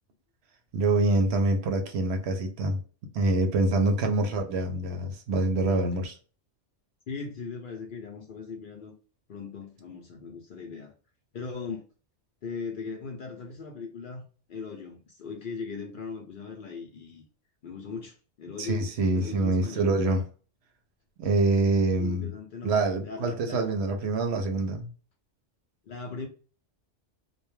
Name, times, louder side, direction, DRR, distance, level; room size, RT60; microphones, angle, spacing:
voice 1, 0.7-2.8 3.1-6.2 18.6-20.2 21.2-22.3 22.6-24.9, right 2 dB, 70° right, 0.8 m, -25 dB
voice 2, 7.1-8.9 9.3-10.9 11.3-11.9 12.4-17.2 17.6-19.9 22.0-23.7 25.9-26.3, left 5 dB, 60° left, 0.6 m, -39 dB
2.2 x 2.1 x 3.0 m
omnidirectional pair, 1.2 m